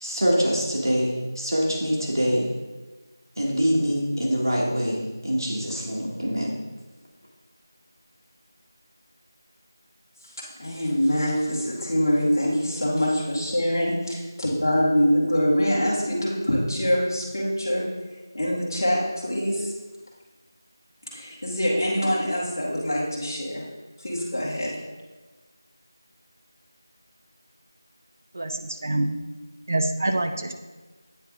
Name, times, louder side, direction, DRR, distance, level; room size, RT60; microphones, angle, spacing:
voice 1, 0.0-2.5 3.4-6.5, equal, 90° right, -4 dB, 1.5 m, -24 dB
voice 2, 10.6-17.8 18.3-19.7 21.1-23.7 24.0-24.7, equal, 55° left, -5 dB, 1.7 m, -24 dB
voice 3, 28.4-29.2 29.7-30.5, right 2 dB, 40° right, 6 dB, 0.4 m, -26 dB
9.1 x 3.3 x 3.6 m, 1.2 s
figure-of-eight pair, 175°, 2 cm